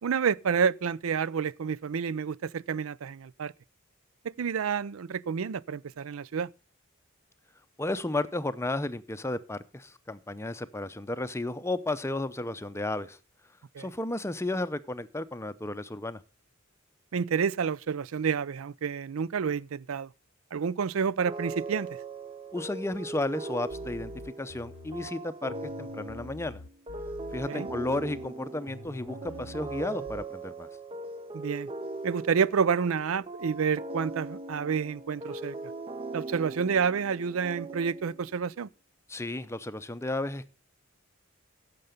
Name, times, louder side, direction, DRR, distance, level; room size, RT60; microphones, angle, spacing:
voice 1, 0.0-3.5 4.2-6.5 13.7-13.9 17.1-20.1 20.5-22.0 27.5-27.7 31.3-31.7 32.0-35.6 36.1-38.7, right 6 dB, 90° right, 0.5 m, -29 dB
voice 2, 7.8-13.2 13.8-16.2 22.5-24.1 24.4-26.6 27.3-30.7 39.1-40.5, left 2 dB, 15° left, 0.6 m, -33 dB
sound 1, 21.2-38.4, right 2 dB, 25° right, 0.6 m, -40 dB
sound 2, 23.7-25.1 25.5-28.3 28.7-30.3, left 3 dB, 85° left, 0.8 m, -46 dB
15.0 x 6.9 x 5.1 m
head